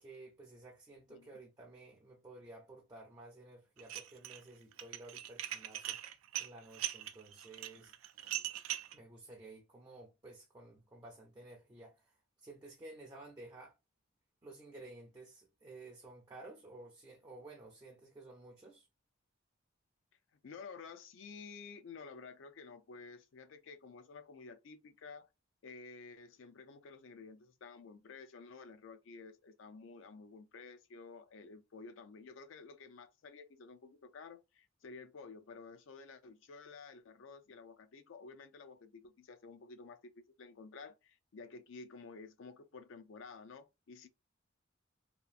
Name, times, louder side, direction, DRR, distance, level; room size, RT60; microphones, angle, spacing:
voice 1, 0.0-6.0 6.4-7.9 8.9-12.1 12.4-13.8 14.4-18.9, right 2 dB, 20° right, 0.5 m, -53 dB
Dishes pots and pans, 3.8-4.4 4.7-9.0, right 12 dB, 85° right, 0.4 m, -40 dB
voice 2, 20.4-25.3 25.6-44.1, left 4 dB, 65° left, 0.4 m, -52 dB
2.8 x 2.4 x 2.4 m
head